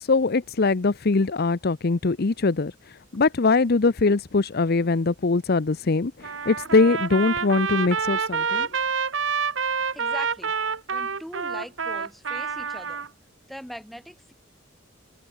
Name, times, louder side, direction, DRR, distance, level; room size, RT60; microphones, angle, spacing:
voice 1, 0.0-2.7 3.1-8.7, left 3 dB, 50° left, 0.7 m, -22 dB
Trumpet, 6.2-13.1, right 5 dB, 70° right, 1.4 m, -27 dB
voice 2, 9.9-10.5 10.9-13.1 13.5-14.3, equal, ahead, 8.0 m, -41 dB
head